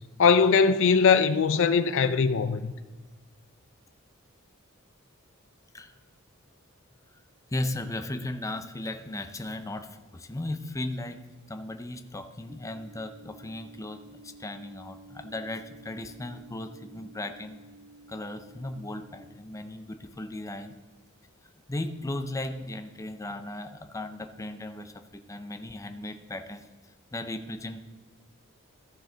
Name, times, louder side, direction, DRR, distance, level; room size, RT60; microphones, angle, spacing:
voice 1, 0.2-2.7, left 5 dB, 60° left, 0.4 m, -21 dB
voice 2, 7.5-11.2 11.5-17.6 18.1-20.7 21.7-26.7 27.1-27.8, left 1 dB, 15° left, 0.6 m, -36 dB
sound 1, 12.5-19.2, right 2 dB, 25° right, 1.0 m, -52 dB
14.5 x 6.5 x 3.9 m
head